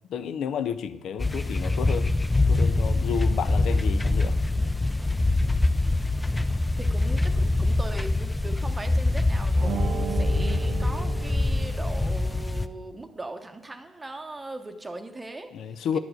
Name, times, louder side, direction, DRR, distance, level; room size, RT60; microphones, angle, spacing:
voice 1, 0.1-2.1 2.5-4.4 15.5-16.0, left 8 dB, 75° left, 13 dB, 0.4 m, -31 dB
sound 1, 1.2-12.7, left 2 dB, 15° left, 0.4 m, -24 dB
voice 2, 6.8-15.5 15.9-16.0, right 2 dB, 20° right, 6 dB, 0.8 m, -39 dB
sound 2, 9.5-12.2, right 9 dB, 65° right, 0.5 m, -35 dB
9.9 x 4.7 x 7.6 m, 1.1 s
cardioid pair, 90°, 0 cm